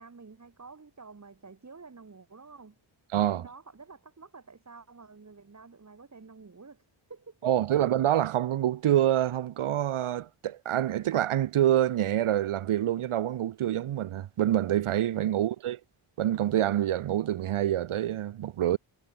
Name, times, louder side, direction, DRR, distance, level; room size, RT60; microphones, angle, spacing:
voice 1, 0.0-2.8 3.3-6.8 7.1-7.7, right 4 dB, 35° right, 7.0 m, -49 dB
voice 2, 3.1-3.5 7.4-15.8 16.2-18.8, right 12 dB, 85° right, 2.0 m, -26 dB
cardioid pair, 95°, 49 cm